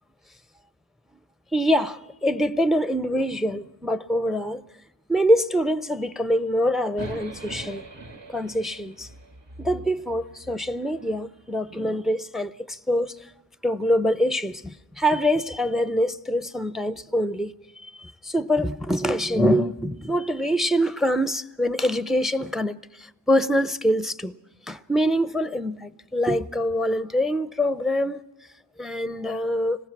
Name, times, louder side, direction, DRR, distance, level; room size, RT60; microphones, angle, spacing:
voice 1, 1.5-4.6 5.1-7.8 8.3-9.1 9.6-13.1 13.6-17.5 17.8-24.3 24.7-28.2 28.8-29.8, equal, ahead, 0.6 m, -24 dB
sound 1, 7.0-11.2, right 2 dB, 80° right, 1.9 m, -42 dB
26.0 x 19.0 x 6.0 m
wide cardioid pair, 50°, 43 cm